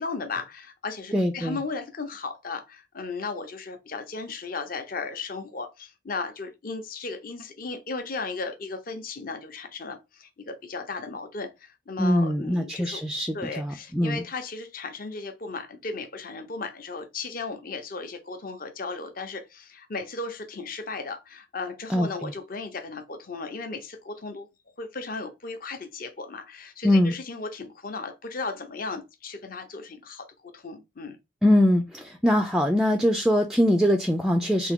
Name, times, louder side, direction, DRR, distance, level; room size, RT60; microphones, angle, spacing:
voice 1, 0.0-13.1 13.3-24.5 24.8-31.2, left 4 dB, 45° left, 0.7 m, -36 dB
voice 2, 1.1-1.6 12.0-14.2 21.9-22.3 26.8-27.1 31.4-34.7, left 1 dB, 5° right, 0.3 m, -22 dB
3.6 x 2.8 x 3.5 m
head